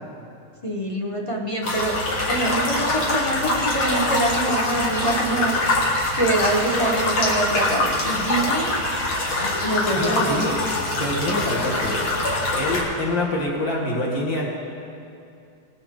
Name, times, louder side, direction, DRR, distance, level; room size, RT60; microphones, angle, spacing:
voice 1, 0.6-1.9 2.3-5.6 6.1-8.7 9.4-10.4, right 2 dB, 25° left, 0 dB, 0.7 m, -25 dB
sound 1, 1.6-12.8, left 2 dB, 85° left, 2.6 m, -24 dB
voice 2, 9.9-10.6 11.0-12.1 12.5-14.5, left 1 dB, 45° left, -3 dB, 2.3 m, -25 dB
20.0 x 9.3 x 3.8 m, 2.5 s
omnidirectional pair, 2.2 m